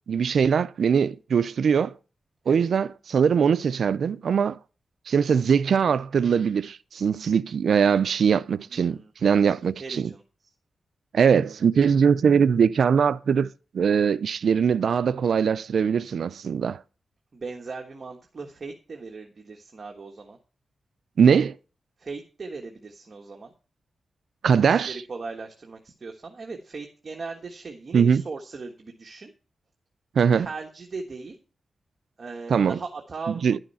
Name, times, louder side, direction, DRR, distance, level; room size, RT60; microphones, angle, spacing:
voice 1, 0.1-1.9 2.5-4.6 5.1-10.1 11.1-16.8 21.2-21.6 24.4-25.0 27.9-28.2 30.2-30.5 32.5-32.8 33.4-33.6, right 6 dB, 70° right, 0.4 m, -21 dB
voice 2, 8.7-9.1 9.6-10.2 17.3-20.4 22.0-23.5 24.6-29.3 30.3-31.4 32.2-33.4, right 4 dB, 40° right, 1.4 m, -38 dB
11.5 x 6.4 x 5.5 m
wide cardioid pair, 160°, 0 cm